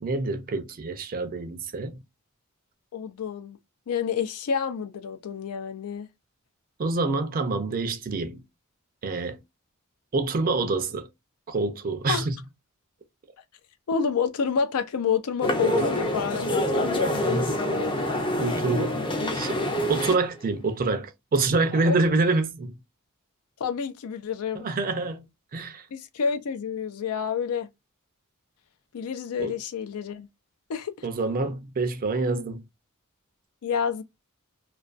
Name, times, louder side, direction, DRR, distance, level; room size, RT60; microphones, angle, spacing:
voice 1, 0.0-2.0 6.8-8.4 9.0-9.4 10.1-11.1 11.5-12.3 17.2-17.5 18.4-19.0 19.3-19.6 19.9-22.7 24.5-25.2 25.5-25.8 29.4-29.5 31.0-32.6, right 3 dB, 40° right, 0.4 m, -26 dB
voice 2, 2.9-3.6 3.9-6.1 12.1-12.3 13.9-18.0 21.7-22.0 23.6-24.7 25.9-27.7 28.9-30.3 30.7-31.1 33.6-34.0, left 6 dB, 80° left, 0.4 m, -29 dB
sound 1, 15.4-20.2, left 1 dB, 20° left, 0.5 m, -26 dB
2.3 x 2.2 x 2.4 m
head